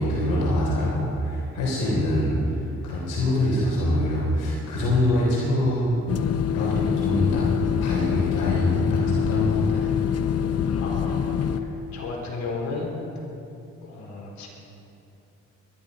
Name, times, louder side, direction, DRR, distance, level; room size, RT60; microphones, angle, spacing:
voice 1, 0.0-6.0 6.5-7.5 7.8-9.9, left 1 dB, 85° left, -4 dB, 3.6 m, -24 dB
sound 1, 6.1-11.6, left 8 dB, 55° left, 0.8 m, -25 dB
voice 2, 10.8-11.3 11.9-12.9 13.8-14.5, left 3 dB, 70° left, -2 dB, 4.3 m, -33 dB
22.0 x 12.0 x 5.3 m, 2.7 s
cardioid pair, 90°, 30 cm